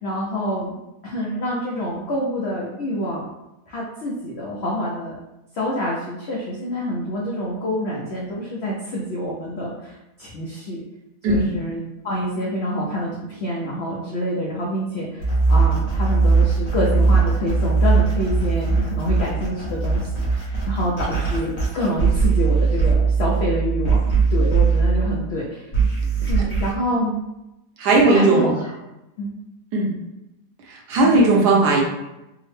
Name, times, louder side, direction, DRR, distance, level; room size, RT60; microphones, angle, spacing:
voice 1, 0.0-0.7 1.0-3.3 3.7-5.2 5.5-10.8 11.2-24.0 24.3-25.7 26.2-27.2 28.0-28.7 29.2-29.4 31.0-31.3, equal, 85° left, -4 dB, 0.5 m, -27 dB
sound 1, 15.2-25.3 25.7-26.7, right 4 dB, 35° left, 0.7 m, -19 dB
voice 2, 27.8-28.5 29.7-29.9 30.9-31.8, right 2 dB, 75° right, -2 dB, 1.3 m, -16 dB
3.5 x 2.0 x 3.2 m, 0.93 s
omnidirectional pair, 1.8 m